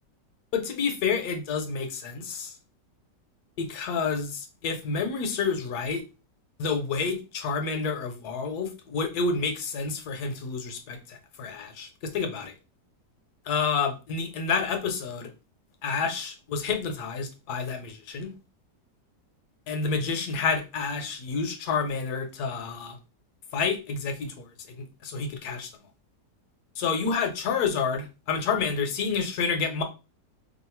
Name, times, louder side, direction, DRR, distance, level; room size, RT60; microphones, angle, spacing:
voice 1, 0.5-2.5 3.6-6.0 6.6-12.5 13.5-15.3 15.8-18.3 19.7-23.0 23.5-25.7 26.8-29.8, left 5 dB, 70° left, 6 dB, 1.2 m, -29 dB
3.1 x 2.4 x 4.3 m, 0.30 s
omnidirectional pair, 1.8 m